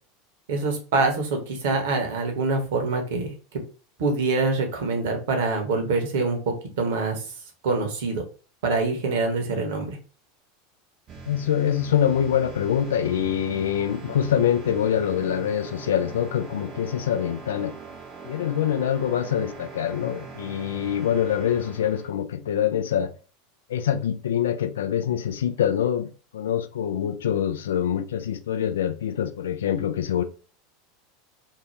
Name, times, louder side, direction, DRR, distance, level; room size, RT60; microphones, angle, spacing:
voice 1, 0.5-3.3 4.0-7.2 7.6-8.2 8.6-10.0, right 3 dB, 60° right, 0.8 m, -25 dB
sound 1, 11.1-22.1, right 5 dB, 35° right, 0.6 m, -42 dB
voice 2, 11.3-17.7 18.2-23.1 23.7-30.2, left 9 dB, 70° left, 0.3 m, -25 dB
2.7 x 2.1 x 3.2 m
figure-of-eight pair, 80°, 0 cm